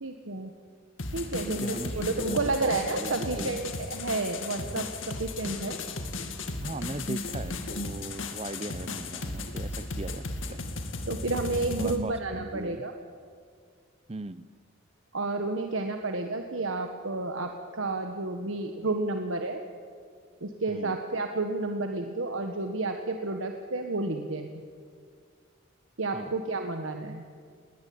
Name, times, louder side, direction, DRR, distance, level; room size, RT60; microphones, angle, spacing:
voice 1, 0.0-0.5 1.1-5.8 11.1-12.9 15.1-19.6 20.4-24.6 26.0-27.2, right 2 dB, 70° right, 5 dB, 1.4 m, -31 dB
sound 1, 1.0-12.0, left 2 dB, 70° left, 2.2 m, -35 dB
voice 2, 1.5-3.6 6.6-10.8 11.8-12.8 14.1-14.4 20.7-21.0 26.1-26.3, right 2 dB, 30° right, 16 dB, 0.7 m, -39 dB
20.5 x 20.0 x 8.8 m, 2.1 s
head